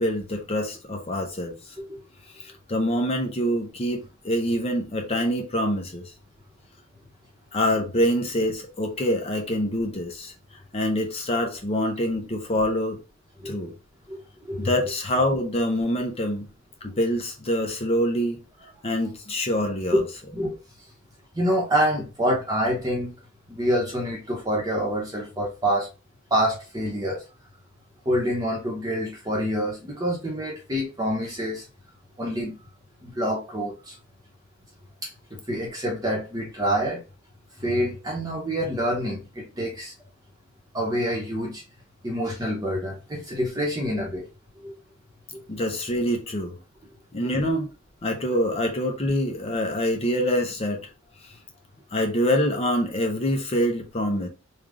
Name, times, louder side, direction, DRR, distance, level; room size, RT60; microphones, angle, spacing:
voice 1, 0.0-1.5 2.4-6.1 7.5-10.3 10.7-13.0 13.4-13.8 14.6-16.5 16.8-18.4 18.8-20.0 45.5-46.6 47.1-47.7 48.0-50.9 51.9-54.3, equal, 30° left, 0.7 m, -25 dB
voice 2, 21.3-23.1 23.5-25.9 26.3-27.2 28.0-31.6 32.2-32.6 33.0-34.0 35.3-37.0 37.6-39.9 40.7-41.6 42.0-44.3 44.6-44.7 47.2-47.3, equal, 20° right, 1.0 m, -26 dB
3.4 x 2.4 x 3.6 m
head